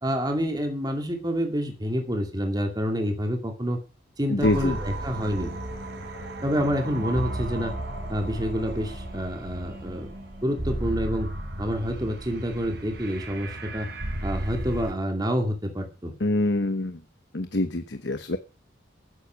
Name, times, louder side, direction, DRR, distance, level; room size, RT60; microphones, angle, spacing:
voice 1, 0.0-3.8 4.2-5.5 6.4-7.7 8.1-10.1 10.4-11.3 11.6-13.9 14.2-16.1, equal, 20° right, 3 dB, 2.6 m, -28 dB
voice 2, 4.3-4.8 16.2-17.0 17.3-18.4, left 2 dB, 65° left, 9 dB, 1.1 m, -25 dB
sound 1, 4.4-14.9, right 1 dB, 60° right, 4.6 m, -34 dB
14.0 x 9.8 x 6.4 m, 0.34 s
head